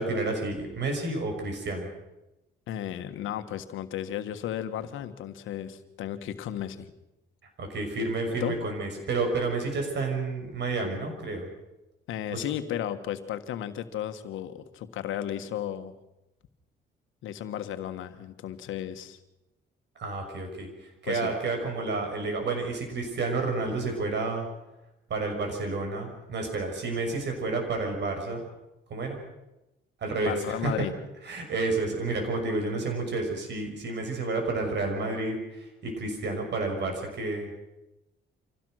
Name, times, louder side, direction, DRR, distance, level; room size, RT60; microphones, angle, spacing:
voice 1, 0.0-1.9 7.6-11.5 12.3-12.4 20.0-24.5 25.1-28.4 28.9-29.2 30.0-30.7 31.3-37.5, right 3 dB, 60° right, 3 dB, 6.3 m, -30 dB
voice 2, 2.7-6.9 8.4-8.6 12.1-15.9 17.2-19.2 21.1-21.3 30.2-30.9, left 11 dB, 85° left, 9 dB, 1.5 m, -34 dB
25.5 x 16.5 x 6.4 m, 0.95 s
cardioid pair, 90°, 20 cm